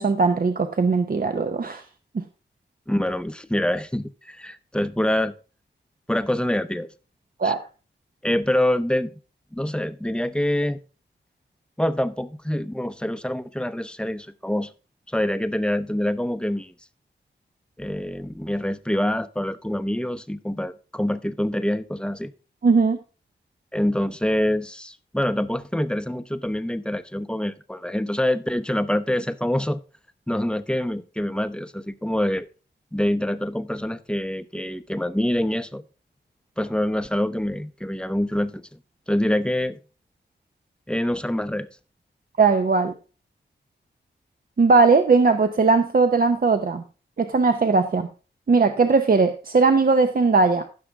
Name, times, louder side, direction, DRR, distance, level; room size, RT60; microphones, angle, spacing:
voice 1, 0.0-1.8 2.1-2.2 7.4-7.6 22.6-23.0 42.4-42.9 44.6-46.8 47.2-48.1 48.5-50.6, right 4 dB, 50° right, 7 dB, 0.8 m, -19 dB
voice 2, 2.9-5.3 6.1-6.9 7.4-7.5 8.2-9.1 9.5-10.8 11.8-14.7 15.1-16.7 17.8-22.3 23.7-29.8 30.3-32.5 32.9-35.8 36.6-38.6 39.1-39.8 40.9-41.7, left 1 dB, 5° left, 12 dB, 0.7 m, -25 dB
15.0 x 6.0 x 3.6 m, 0.35 s
wide cardioid pair, 75°, 19 cm